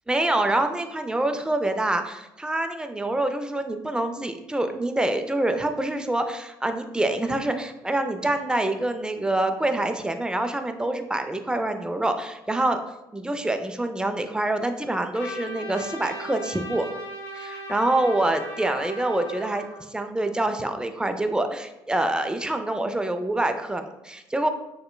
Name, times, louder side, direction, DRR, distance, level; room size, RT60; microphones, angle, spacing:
voice 1, 0.1-12.8 13.1-16.9 17.3-24.5, right 1 dB, 10° right, 7 dB, 0.4 m, -26 dB
Trumpet, 15.1-19.8, equal, 70° left, 0.8 m, -38 dB
6.4 x 2.2 x 2.2 m, 0.93 s
hypercardioid pair, 55°, 9 cm